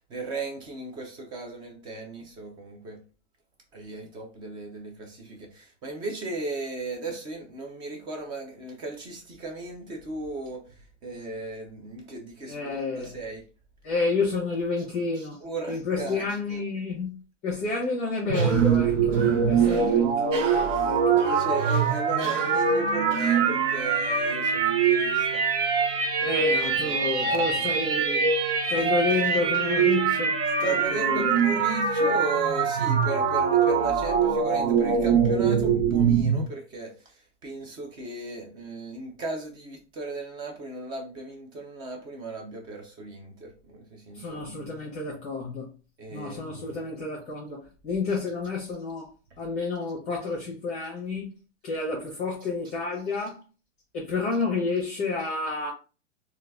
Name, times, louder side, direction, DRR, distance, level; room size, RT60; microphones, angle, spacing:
voice 1, 0.1-3.0 3.7-13.4 15.2-16.3 19.7-19.8 20.7-25.5 26.2-26.5 26.8-27.7 28.8-28.9 30.1-30.2 30.6-44.8 46.0-46.7, right 3 dB, 10° right, 0.4 m, -36 dB
voice 2, 12.5-13.1 13.8-15.4 15.7-20.5 20.8-21.2 26.2-28.3 28.7-31.4 44.1-45.7 46.1-49.1 49.4-51.3 51.6-53.4 53.9-55.7, left 3 dB, 20° left, 0.8 m, -30 dB
sound 1, 18.3-36.4, right 6 dB, 50° right, 0.8 m, -23 dB
Cough, 18.3-24.0, right 5 dB, 75° right, 0.8 m, -39 dB
3.8 x 2.4 x 2.2 m
hypercardioid pair, 135°, 37 cm